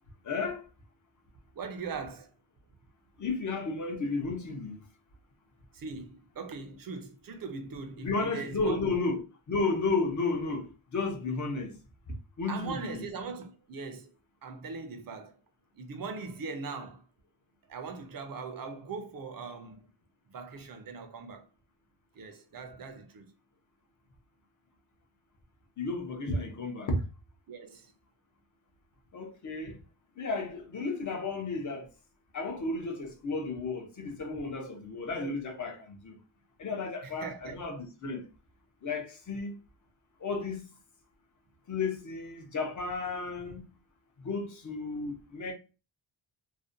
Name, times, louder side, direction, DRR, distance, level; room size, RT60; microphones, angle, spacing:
voice 1, 0.2-0.6 3.2-4.8 8.0-9.2 9.5-11.7 12.4-13.1 25.8-27.0 29.1-29.8 30.2-31.9 32.3-36.1 36.6-38.2 38.8-39.6 40.2-40.6 41.7-43.6 44.2-45.5, left 3 dB, 40° left, 0.5 m, -33 dB
voice 2, 1.5-2.3 5.7-8.9 12.5-14.1 14.4-15.4 15.7-17.0 17.7-19.9 20.3-21.5 22.1-23.3 27.5-27.9 37.0-37.6, right 4 dB, 45° right, 0.4 m, -40 dB
2.5 x 2.1 x 2.5 m
wide cardioid pair, 180°, 49 cm